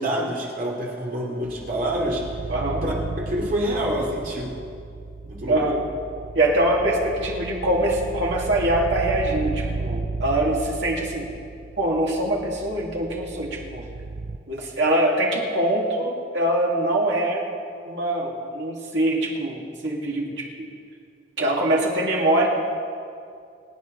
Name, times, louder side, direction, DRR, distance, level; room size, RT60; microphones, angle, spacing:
voice 1, 0.0-2.2 2.8-4.5 5.3-5.6, right 1 dB, 45° right, -3 dB, 2.7 m, -27 dB
sound 1, 1.4-14.4, right 3 dB, 25° right, 0.4 m, -34 dB
voice 2, 2.5-2.8 5.5-5.8 6.3-11.3 11.8-13.9 14.5-17.4 17.9-20.7 21.4-22.5, right 1 dB, 60° right, -2 dB, 2.4 m, -23 dB
25.0 x 9.2 x 4.0 m, 2.4 s
head